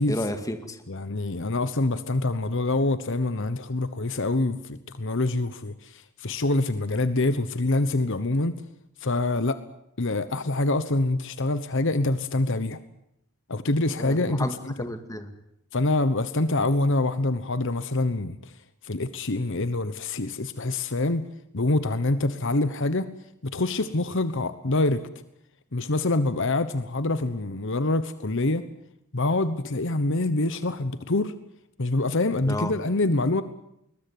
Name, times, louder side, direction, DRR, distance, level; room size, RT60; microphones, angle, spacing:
voice 1, 0.1-0.8 14.0-15.3 32.5-32.7, left 1 dB, 15° left, 7 dB, 2.2 m, -32 dB
voice 2, 0.9-8.6 9.0-9.6 10.0-12.8 13.5-14.7 15.7-18.5 18.8-21.3 21.5-23.1 23.4-25.1 25.7-28.7 29.1-31.3 31.8-33.4, left 2 dB, 55° left, 12 dB, 1.1 m, -25 dB
21.5 x 20.5 x 9.4 m, 0.78 s
head